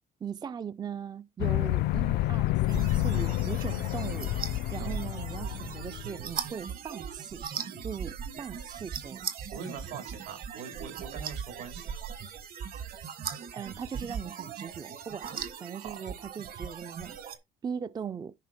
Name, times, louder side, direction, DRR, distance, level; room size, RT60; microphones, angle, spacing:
voice 1, 0.2-4.4 4.7-9.2 13.5-17.2 17.6-18.3, right 7 dB, 25° right, 0.4 m, -39 dB
sound 1, 1.4-6.2, left 16 dB, 75° left, 0.5 m, -29 dB
sound 2, 2.7-17.4, right 7 dB, 60° right, 1.6 m, -39 dB
voice 2, 4.8-5.1 9.5-11.9 15.7-16.0, right 6 dB, 85° right, 4.3 m, -43 dB
10.5 x 4.0 x 5.1 m
cardioid pair, 110°, 17 cm